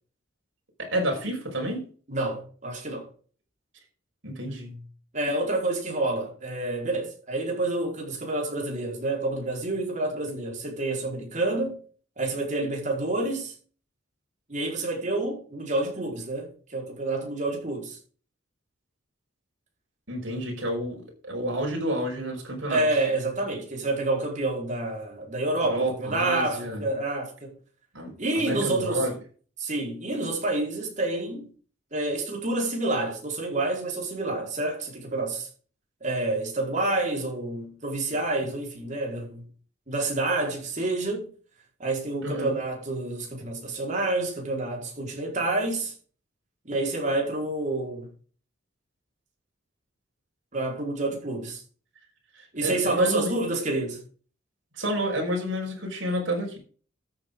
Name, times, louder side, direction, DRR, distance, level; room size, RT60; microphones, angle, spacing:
voice 1, 0.8-1.9 4.2-4.8 20.1-22.8 25.6-26.9 27.9-29.2 42.2-42.6 52.3-53.3 54.7-56.6, equal, 65° right, 5.3 m, -30 dB
voice 2, 2.1-3.1 5.1-11.8 12.2-13.5 14.5-18.0 22.7-27.6 28.2-29.1 29.6-31.5 31.9-35.5 36.0-39.5 39.9-41.3 41.8-45.9 46.6-48.1 50.5-51.6 52.5-54.0, right 2 dB, 40° right, 4.8 m, -28 dB
13.5 x 8.3 x 3.9 m
head